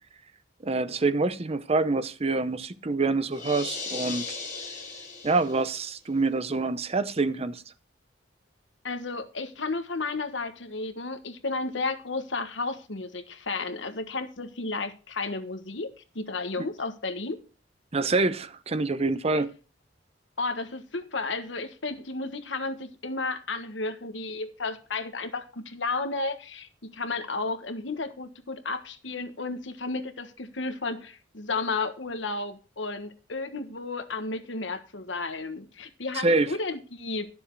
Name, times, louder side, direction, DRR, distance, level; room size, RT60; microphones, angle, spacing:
voice 1, 0.6-4.2 5.2-7.6 16.6-16.7 17.9-19.5 36.1-36.5, right 3 dB, 35° right, 0.7 m, -26 dB
sound 1, 3.3-5.8, left 4 dB, 40° left, 4.1 m, -37 dB
voice 2, 8.8-17.4 20.4-37.3, left 3 dB, 80° left, 1.4 m, -33 dB
12.5 x 7.0 x 4.6 m
head